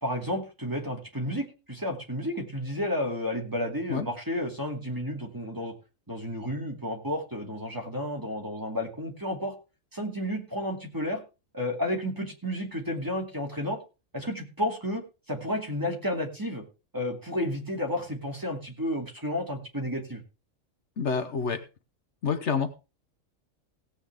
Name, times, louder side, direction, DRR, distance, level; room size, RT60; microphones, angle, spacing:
voice 1, 0.0-5.7 6.1-9.5 9.9-11.2 11.5-13.8 14.1-16.6 16.9-20.2, left 1 dB, 15° right, 1 dB, 2.5 m, -31 dB
voice 2, 21.0-21.6 22.2-22.7, left 6 dB, 65° left, 9 dB, 1.2 m, -28 dB
17.0 x 8.4 x 3.5 m, 0.30 s
omnidirectional pair, 1.3 m